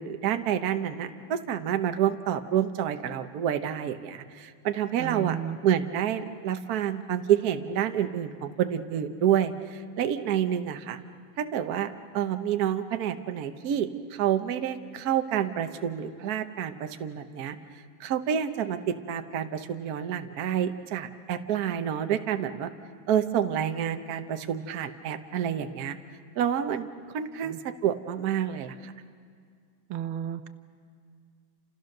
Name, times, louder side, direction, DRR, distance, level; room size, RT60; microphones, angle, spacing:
voice 1, 0.0-5.4 5.6-11.0 11.4-17.6 18.0-22.7 23.1-26.0 26.4-26.9 27.1-28.9, right 9 dB, 55° right, 8 dB, 1.3 m, -28 dB
voice 2, 5.0-5.6 27.4-27.6 29.9-30.5, right 9 dB, 90° right, 10 dB, 1.8 m, -33 dB
29.0 x 28.0 x 6.6 m, 2.2 s
omnidirectional pair, 2.2 m